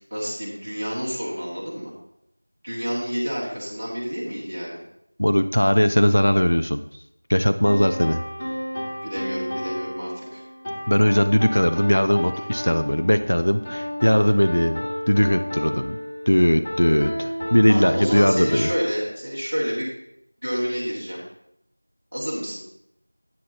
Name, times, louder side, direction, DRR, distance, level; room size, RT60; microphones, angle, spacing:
voice 1, 0.1-1.9 2.6-4.8 9.0-10.4 17.7-19.9 20.4-21.2 22.1-22.6, equal, 20° right, -8 dB, 2.2 m, -29 dB
voice 2, 5.2-6.8 7.3-8.2 10.9-16.0 16.3-18.7, equal, 55° left, 10 dB, 0.5 m, -19 dB
sound 1, 7.6-18.8, equal, 5° left, 0.7 m, -31 dB
9.5 x 7.0 x 3.9 m, 0.76 s
figure-of-eight pair, 180°, 0 cm